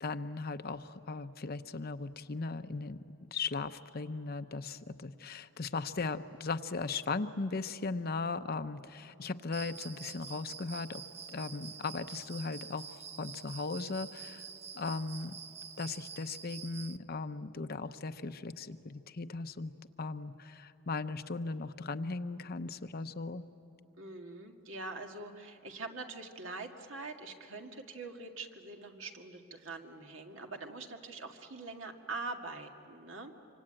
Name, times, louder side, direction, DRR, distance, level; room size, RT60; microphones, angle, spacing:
voice 1, 0.0-3.0 3.3-11.0 11.3-12.9 13.2-14.4 14.7-15.3 15.8-19.7 20.0-23.5, left 3 dB, 50° left, 10 dB, 0.8 m, -37 dB
Cricket, 9.5-17.0, right 7 dB, 35° right, 0.6 m, -47 dB
voice 2, 24.0-33.3, right 3 dB, 75° right, 3 dB, 2.0 m, -44 dB
26.0 x 25.5 x 8.9 m, 2.9 s
head